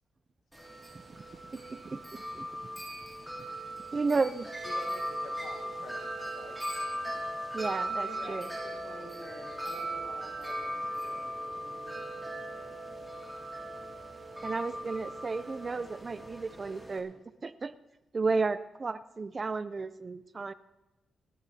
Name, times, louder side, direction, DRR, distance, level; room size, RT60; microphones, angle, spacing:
Wind chime, 0.5-17.0, right 1 dB, ahead, 2.2 m, -38 dB
voice 1, 1.5-2.5 3.9-4.5 7.5-8.5 14.4-17.7 18.1-20.5, right 4 dB, 25° right, 14 dB, 0.3 m, -33 dB
voice 2, 4.6-6.6 7.0-7.2, left 4 dB, 80° left, 0 dB, 1.2 m, -49 dB
voice 3, 8.0-11.9 12.2-12.7, left 2 dB, 60° left, -1 dB, 4.3 m, -49 dB
28.5 x 11.0 x 2.7 m, 1.0 s
wide cardioid pair, 165°, 0 cm